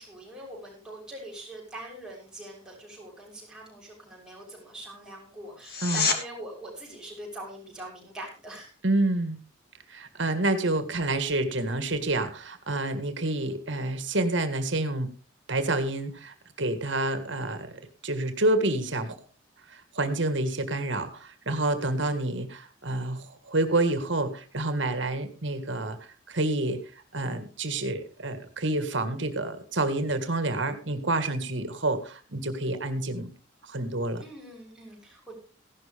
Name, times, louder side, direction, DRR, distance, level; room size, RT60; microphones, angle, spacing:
voice 1, 0.0-8.7 34.2-35.3, right 1 dB, 5° right, -3 dB, 6.0 m, -43 dB
sound 1, 5.6-6.2 17.6-17.7, left 5 dB, 50° left, 2.3 m, -27 dB
voice 2, 8.8-9.4 9.9-15.1 15.5-17.7 18.0-19.2 19.7-26.8 27.1-33.3 33.6-34.2, right 2 dB, 70° right, 9 dB, 1.8 m, -28 dB
16.0 x 12.0 x 3.5 m, 0.37 s
head